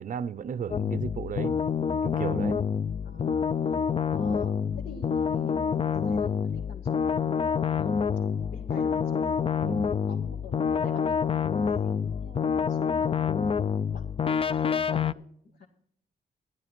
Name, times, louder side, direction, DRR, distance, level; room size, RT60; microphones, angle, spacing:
voice 1, 0.0-1.6 2.0-2.7 9.6-9.9, right 7 dB, 55° right, 0.6 m, -34 dB
sound 1, 0.7-15.1, left 6 dB, 35° left, 0.4 m, -27 dB
voice 2, 3.0-3.5 4.1-8.1 8.5-9.3 10.1-13.5 13.9-14.1 14.6-15.2 15.5-15.7, left 4 dB, 80° left, 1.8 m, -46 dB
14.0 x 11.5 x 4.5 m
wide cardioid pair, 115°, 17 cm